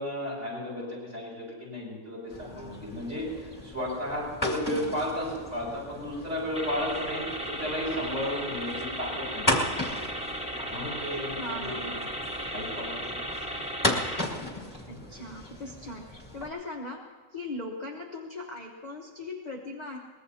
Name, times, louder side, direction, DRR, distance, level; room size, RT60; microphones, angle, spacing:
voice 1, 0.0-9.8 10.7-11.9 12.5-13.3 14.9-15.0, left 1 dB, 45° right, -3 dB, 7.1 m, -34 dB
sound 1, 2.3-16.5, left 1 dB, 10° left, 1.6 m, -35 dB
sound 2, 6.5-14.2, right 1 dB, 5° right, 0.7 m, -35 dB
voice 2, 11.4-12.1 14.9-17.0 17.3-20.0, left 2 dB, 30° left, -1 dB, 0.9 m, -39 dB
22.5 x 20.0 x 2.8 m, 1.4 s
omnidirectional pair, 1.8 m